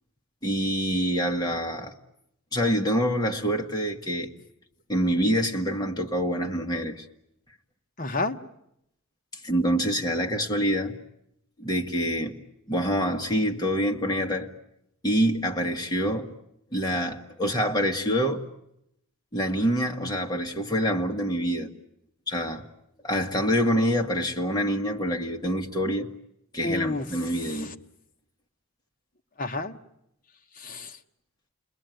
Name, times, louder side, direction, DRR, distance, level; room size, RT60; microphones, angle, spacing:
voice 1, 0.4-1.9 2.5-4.3 4.9-7.1 9.4-10.9 11.6-12.3 12.7-14.5 15.0-16.3 16.7-18.4 19.3-21.7 22.3-22.6 23.0-26.1 26.5-27.7, equal, 20° left, 1.7 m, -26 dB
voice 2, 8.0-8.4 26.6-27.7 29.4-29.8 30.6-31.0, left 2 dB, 35° left, 1.2 m, -31 dB
30.0 x 21.5 x 9.3 m
head